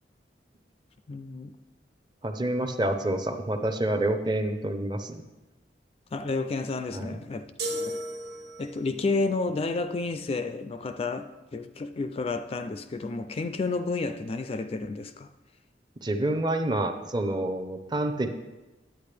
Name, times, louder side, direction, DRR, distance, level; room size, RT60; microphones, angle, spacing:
voice 1, 1.1-1.5 6.1-7.5 7.8-8.0 8.6-15.3, left 3 dB, 35° left, 0.3 m, -31 dB
voice 2, 2.2-5.2 6.9-7.2 16.0-18.3, right 1 dB, 25° right, 0.6 m, -28 dB
sound 1, 7.6-8.9, equal, 65° right, 1.6 m, -34 dB
10.0 x 8.8 x 3.4 m
head